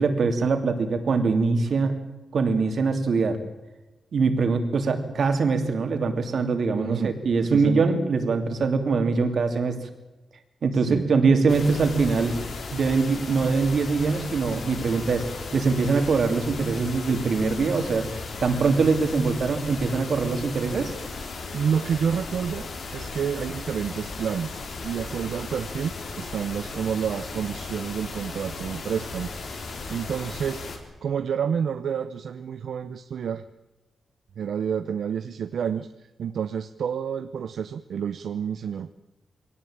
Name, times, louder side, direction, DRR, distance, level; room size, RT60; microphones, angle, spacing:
voice 1, 0.0-1.9 2.3-3.4 4.1-9.8 10.6-12.4 12.7-15.2 15.5-18.1 18.4-20.9, right 4 dB, 55° right, 6 dB, 2.9 m, -23 dB
voice 2, 6.7-7.1 7.4-7.9 10.7-11.1 21.5-30.6 31.0-33.4 34.4-35.9 36.2-38.9, right 7 dB, 75° right, 10 dB, 0.7 m, -29 dB
sound 1, 11.5-30.8, left 3 dB, 60° left, 3.9 m, -36 dB
23.0 x 18.0 x 8.9 m, 1.0 s
wide cardioid pair, 155°, 0 cm